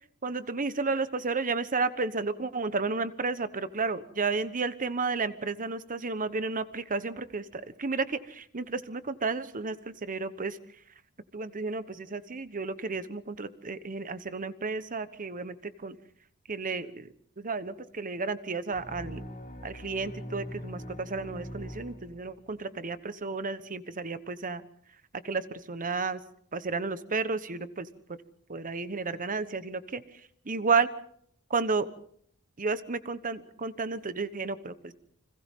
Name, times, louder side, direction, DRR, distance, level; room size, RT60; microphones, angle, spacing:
voice 1, 0.2-10.6 11.3-16.0 16.5-17.1 17.4-19.2 19.6-24.6 25.2-26.2 26.5-28.2 28.5-30.0 30.4-30.9 31.5-31.9 32.6-34.9, right 4 dB, 40° right, 13 dB, 1.1 m, -32 dB
sound 1, 18.7-22.6, equal, 40° left, 3.7 m, -42 dB
30.0 x 25.5 x 3.7 m, 0.65 s
head